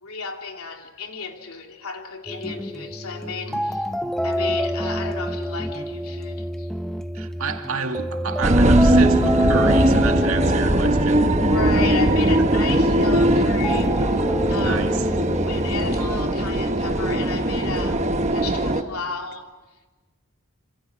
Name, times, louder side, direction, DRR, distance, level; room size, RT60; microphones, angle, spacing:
voice 1, 0.0-3.8 4.2-6.7 11.4-14.2 14.5-14.9 15.5-19.5, left 5 dB, 90° left, 3.4 m, -33 dB
sound 1, 2.3-16.3, equal, 5° left, 0.9 m, -28 dB
voice 2, 7.1-11.3 12.4-12.5 14.6-15.1, right 5 dB, 75° right, 2.2 m, -30 dB
sound 2, 8.4-18.8, right 1 dB, 30° right, 1.2 m, -20 dB
27.0 x 27.0 x 6.3 m
head